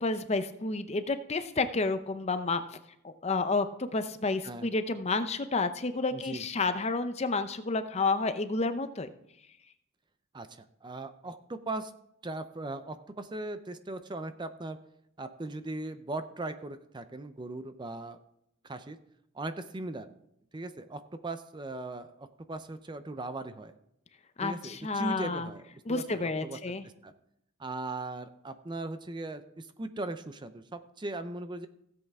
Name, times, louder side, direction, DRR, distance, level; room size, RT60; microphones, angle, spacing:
voice 1, 0.0-2.6 3.0-9.1 24.4-25.5 25.9-26.8, left 3 dB, 30° left, 10 dB, 0.6 m, -30 dB
voice 2, 6.1-6.5 10.3-11.9 12.2-14.8 15.2-18.2 18.6-19.0 19.3-20.1 20.5-23.7 24.4-26.7 27.0-27.1 27.6-31.7, right 2 dB, 20° right, 10 dB, 0.5 m, -39 dB
16.0 x 8.0 x 3.6 m, 0.77 s
head